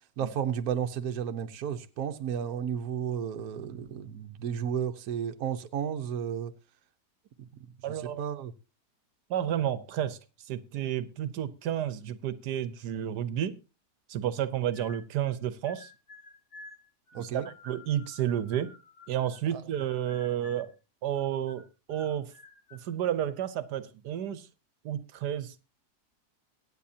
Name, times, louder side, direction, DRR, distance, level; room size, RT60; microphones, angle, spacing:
voice 1, 0.2-6.5 7.4-7.5 7.9-8.5 17.1-17.5 19.5-19.6, right 8 dB, 70° right, 1.3 m, -33 dB
voice 2, 7.8-8.2 9.3-10.2 10.4-13.6 14.1-15.9 17.2-18.7 19.1-20.7 21.0-22.3 22.7-24.5 24.8-25.7, right 10 dB, 85° right, 1.4 m, -31 dB
sound 1, 14.7-15.3 15.6-19.5 19.8-20.7 21.1-22.9, left 3 dB, 45° left, 2.4 m, -52 dB
24.0 x 8.9 x 2.8 m
omnidirectional pair, 1.7 m